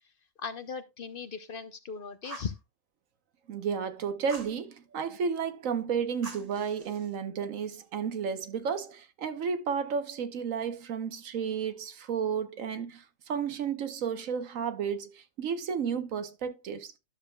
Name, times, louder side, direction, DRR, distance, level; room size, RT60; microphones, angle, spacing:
voice 1, 0.4-2.5, left 5 dB, 50° left, 0.8 m, -38 dB
Fire, 2.2-2.6 4.3-4.6 6.2-7.1, right 3 dB, 30° right, 1.2 m, -45 dB
voice 2, 3.5-16.9, right 6 dB, 85° right, 1.3 m, -32 dB
12.0 x 6.9 x 2.3 m
omnidirectional pair, 1.3 m